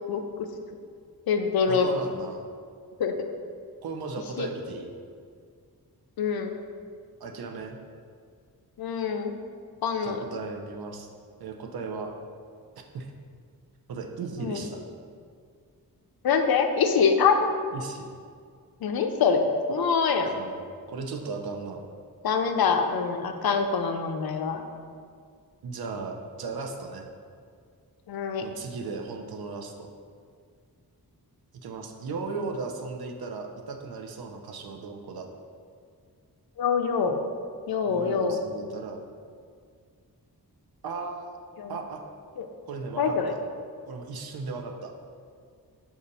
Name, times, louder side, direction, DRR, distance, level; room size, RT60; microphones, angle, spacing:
voice 1, 0.1-0.5 1.3-1.9 3.0-3.1 4.4-4.5 6.2-6.6 8.8-9.4 9.8-10.3 14.4-14.6 16.2-17.5 18.8-20.3 22.2-24.6 28.1-28.5 36.6-37.3 37.7-38.4 41.6-41.8 42.4-42.5 43.0-43.3, left 5 dB, 70° left, 6 dB, 0.5 m, -25 dB
voice 2, 1.7-2.4 3.8-5.0 7.2-7.8 10.0-11.1 11.4-12.1 12.9-13.1 13.9-14.8 17.7-18.1 20.3-20.5 20.9-21.9 25.6-27.1 28.4-29.9 31.6-35.3 37.9-39.1 40.8-41.4 41.7-42.0 42.6-43.4 43.9-44.9, right 4 dB, 75° right, 3 dB, 0.5 m, -36 dB
5.3 x 2.4 x 4.0 m, 2.1 s
wide cardioid pair, 90°, 38 cm